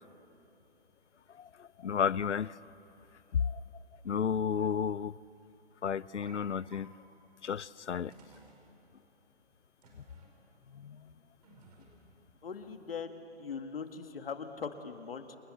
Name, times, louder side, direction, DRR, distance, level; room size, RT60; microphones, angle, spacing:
voice 1, 1.4-2.6 3.3-3.6 4.0-5.2 5.8-6.9 7.4-8.1 10.7-11.1, left 7 dB, 90° left, 22 dB, 0.6 m, -32 dB
sound 1, 6.2-6.4 6.7-6.8 7.5-7.6 8.1-8.6 9.8-10.3 11.4-12.1, right 4 dB, 35° right, 5.4 m, -57 dB
voice 2, 12.4-15.4, left 6 dB, 55° left, 7 dB, 2.0 m, -41 dB
28.5 x 22.5 x 7.7 m, 2.9 s
hypercardioid pair, 155°, 34 cm